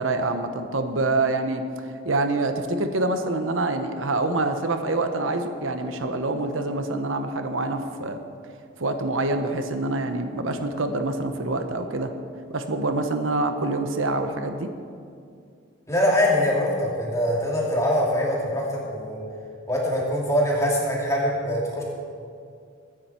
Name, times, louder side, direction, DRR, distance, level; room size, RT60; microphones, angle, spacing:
voice 1, 0.0-1.6 2.0-8.2 8.8-12.1 12.5-14.7, right 2 dB, 85° right, 7 dB, 1.0 m, -26 dB
voice 2, 15.9-19.2 19.7-21.8, left 1 dB, 15° left, -3 dB, 2.8 m, -23 dB
22.5 x 9.9 x 4.5 m, 2.3 s
head